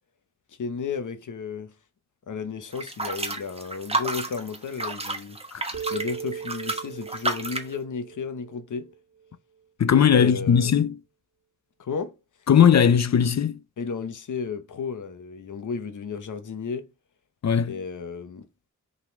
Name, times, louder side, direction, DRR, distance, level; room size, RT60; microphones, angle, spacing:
voice 1, 0.6-1.7 2.3-5.4 5.9-8.9 10.1-10.7 11.8-12.1 13.8-16.9 17.7-18.5, left 5 dB, 85° left, 1.1 m, -33 dB
sound 1, 2.7-7.7, right 2 dB, 20° right, 1.2 m, -31 dB
sound 2, 5.7-9.3, right 7 dB, 60° right, 1.4 m, -38 dB
voice 2, 9.8-11.0 12.5-13.6 17.4-17.8, left 8 dB, 65° left, 0.6 m, -19 dB
5.9 x 4.1 x 5.3 m
wide cardioid pair, 120°, 30 cm